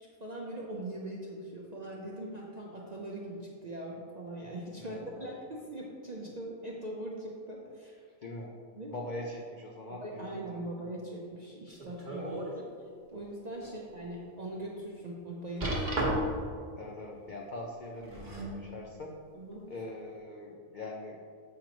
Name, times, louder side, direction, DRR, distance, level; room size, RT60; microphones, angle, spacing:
voice 1, 0.2-8.0 8.8-8.9 9.9-12.4 13.1-15.9 19.3-19.7, right 1 dB, 50° right, -3 dB, 0.5 m, -41 dB
voice 2, 4.8-5.3 8.2-8.5 8.9-10.6 12.2-12.4 13.6-13.8 16.8-19.1 19.7-21.2, left 1 dB, 80° left, -1 dB, 0.4 m, -42 dB
sound 1, 11.7-12.5 13.0-13.1 13.7-13.8 15.6-16.5 17.9-18.6 19.5-19.6, right 1 dB, 35° right, 1.1 m, -33 dB
7.4 x 3.0 x 5.0 m, 2.1 s
omnidirectional pair, 1.6 m